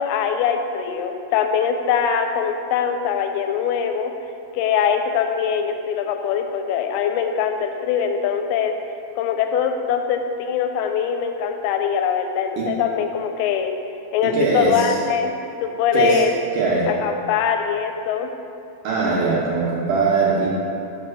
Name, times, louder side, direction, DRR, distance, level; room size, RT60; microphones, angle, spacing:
voice 1, 0.0-4.1 4.5-8.7 9.2-13.7 14.1-15.3 15.6-16.3 16.9-18.3, left 7 dB, 85° left, 6 dB, 2.5 m, -22 dB
voice 2, 14.2-15.0 15.9-16.2 16.5-16.9 18.8-20.5, right 4 dB, 70° right, -5 dB, 2.1 m, -21 dB
5.9 x 5.6 x 6.0 m, 2.7 s
omnidirectional pair, 4.4 m